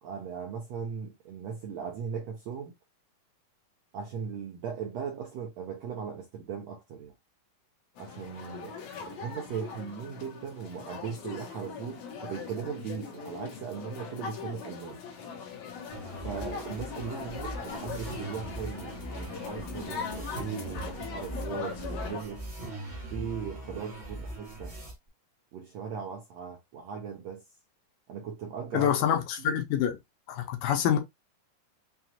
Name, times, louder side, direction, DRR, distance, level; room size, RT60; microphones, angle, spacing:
voice 1, 0.0-2.7 3.9-7.1 8.0-8.8 9.1-15.0 16.2-22.5 23.1-24.8 25.5-27.4 28.1-28.9 29.4-29.6, right 7 dB, 75° right, 1.5 m, -38 dB
sound 1, 8.0-22.2, left 6 dB, 65° left, 2.2 m, -40 dB
sound 2, 15.9-24.9, right 1 dB, 35° right, 1.0 m, -40 dB
voice 2, 28.7-30.0 30.3-31.0, left 9 dB, 80° left, 2.4 m, -26 dB
5.9 x 2.4 x 2.8 m
omnidirectional pair, 4.0 m